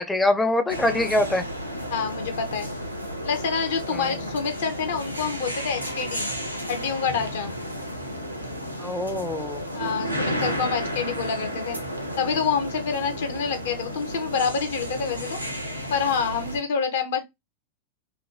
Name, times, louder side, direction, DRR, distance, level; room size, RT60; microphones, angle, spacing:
voice 1, 0.0-1.5 3.9-4.2 8.8-9.6, left 2 dB, 10° left, 0.5 m, -24 dB
sound 1, 0.7-16.6, equal, 90° right, 0.5 m, -32 dB
voice 2, 1.9-2.7 3.2-6.3 6.7-7.5 9.7-11.8 12.2-15.4 15.9-17.2, left 6 dB, 60° left, 0.7 m, -27 dB
2.9 x 2.2 x 3.1 m
figure-of-eight pair, 90°, 0 cm